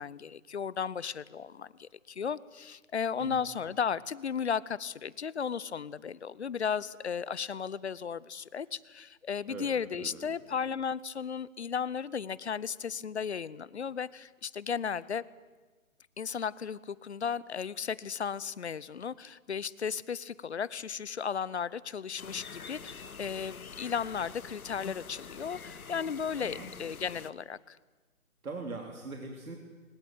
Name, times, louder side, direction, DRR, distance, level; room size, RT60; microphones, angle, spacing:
voice 1, 0.0-15.2 16.2-27.8, left 7 dB, 50° left, 20 dB, 0.8 m, -35 dB
voice 2, 10.0-10.4 26.4-26.7 28.4-29.6, right 3 dB, 80° right, 2 dB, 3.4 m, -41 dB
sound 1, 22.2-27.3, left 5 dB, 85° left, 1.5 m, -46 dB
22.5 x 20.0 x 9.0 m, 1.3 s
hypercardioid pair, 165°, 42 cm